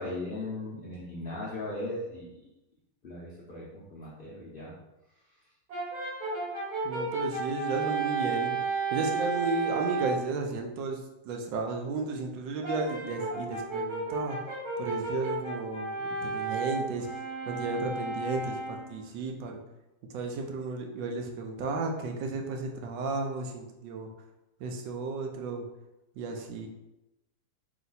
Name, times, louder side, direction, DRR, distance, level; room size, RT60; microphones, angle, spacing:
voice 1, 0.0-2.4 3.0-4.7, left 2 dB, 90° left, -7 dB, 0.4 m, -38 dB
Brass instrument, 5.7-10.3 12.6-19.0, right 4 dB, 60° right, 1.8 m, -33 dB
voice 2, 6.8-8.6 8.9-14.4 14.8-19.6 20.1-24.1 24.6-25.6 26.2-26.7, right 3 dB, 75° right, 2 dB, 1.3 m, -33 dB
3.2 x 3.0 x 3.9 m, 0.94 s
omnidirectional pair, 2.1 m